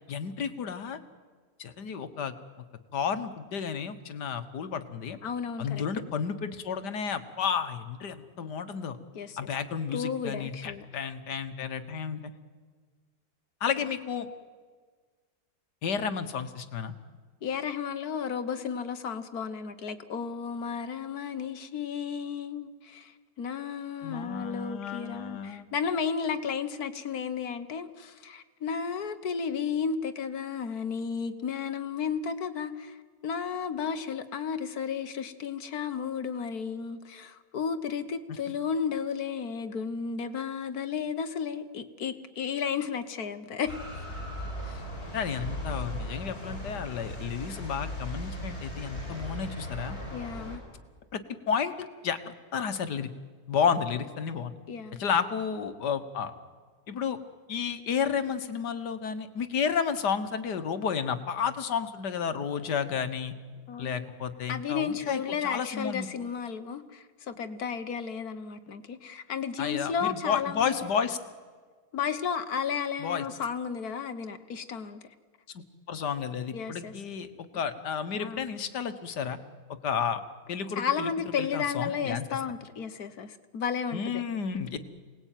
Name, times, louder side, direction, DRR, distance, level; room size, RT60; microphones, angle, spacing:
voice 1, 0.1-1.0 1.6-2.7 2.9-5.2 5.6-9.0 9.4-12.3 13.6-14.3 15.8-16.9 24.0-25.7 45.1-50.0 51.1-52.2 52.5-53.1 53.5-54.5 55.0-56.3 56.9-57.2 57.5-63.3 63.8-66.1 69.6-71.2 73.0-73.3 75.5-77.3 77.6-79.4 79.8-80.2 80.5-81.1 81.4-82.4 83.9-84.8, left 7 dB, 85° left, 10 dB, 1.9 m, -32 dB
voice 2, 5.2-5.8 9.1-9.5 9.9-10.9 17.4-33.0 33.2-43.8 44.6-44.8 50.1-50.6 54.7-55.0 63.7-64.1 64.5-70.8 71.9-75.0 76.5-76.9 78.2-78.5 80.8-84.4, left 6 dB, 65° left, 10 dB, 1.7 m, -33 dB
sound 1, 43.7-50.6, left 1 dB, 40° left, 5.8 m, -38 dB
27.5 x 19.0 x 9.2 m, 1.5 s
omnidirectional pair, 1.7 m